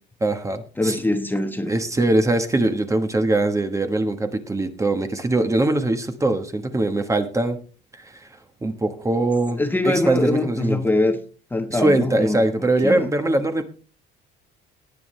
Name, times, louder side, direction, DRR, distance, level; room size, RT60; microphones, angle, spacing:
voice 1, 0.2-1.0 1.7-7.6 7.9-8.3 8.6-10.8 11.7-13.6, right 2 dB, 15° right, 1.2 m, -22 dB
voice 2, 0.8-1.7 9.6-11.2 11.5-12.4 12.8-13.0, left 2 dB, 10° left, 1.1 m, -22 dB
18.5 x 8.7 x 3.2 m
cardioid pair, 130°, 20 cm